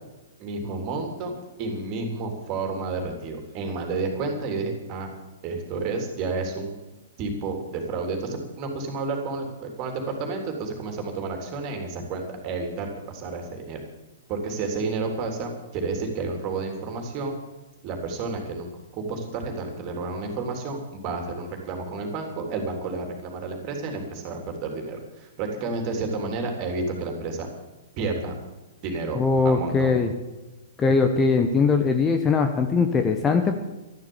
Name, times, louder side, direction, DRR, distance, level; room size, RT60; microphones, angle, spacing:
voice 1, 0.4-1.3 1.6-5.1 5.4-6.7 7.2-13.8 14.3-17.3 17.8-18.7 19.1-27.5 28.0-28.3 28.8-29.2 29.4-30.0, right 3 dB, 30° right, 3 dB, 3.5 m, -30 dB
voice 2, 29.1-30.1 30.8-33.6, left 4 dB, 15° left, 6 dB, 1.1 m, -21 dB
13.0 x 12.0 x 7.2 m, 1.1 s
figure-of-eight pair, 110°, 0 cm